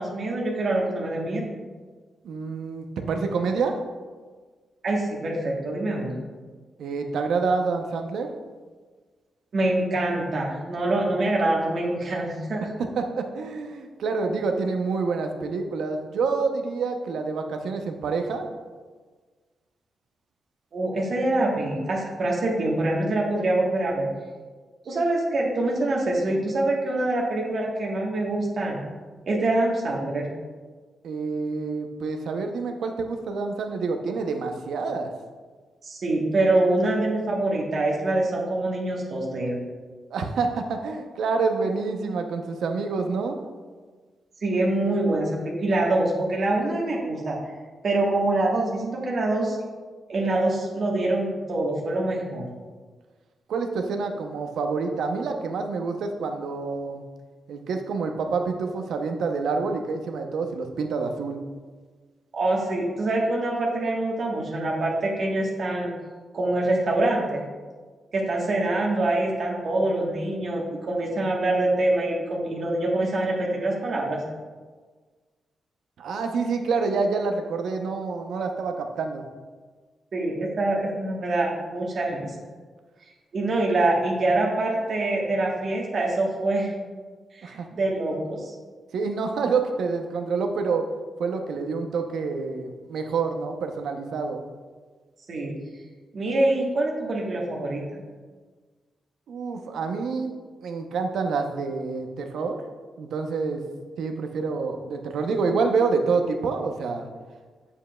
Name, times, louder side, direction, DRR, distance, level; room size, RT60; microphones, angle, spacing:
voice 1, 0.0-1.5 4.8-6.2 9.5-12.7 20.7-24.1 24.8-28.8 29.3-30.3 35.8-39.6 44.4-47.4 47.8-49.6 50.1-52.5 62.3-65.9 66.3-67.4 68.1-74.2 80.1-82.3 83.3-86.7 87.3-88.5 95.3-95.5 96.1-98.0, right 2 dB, 60° right, -2 dB, 1.2 m, -25 dB
voice 2, 2.2-3.8 6.8-8.3 13.0-18.5 31.0-35.1 40.1-43.4 53.5-57.0 57.5-61.4 76.0-79.2 87.4-87.7 88.9-90.8 91.2-94.4 99.3-100.3 100.6-102.6 103.0-103.6 104.0-107.1, right 4 dB, 80° right, 5 dB, 0.6 m, -27 dB
7.4 x 6.8 x 2.3 m, 1.4 s
cardioid pair, 70°, 0 cm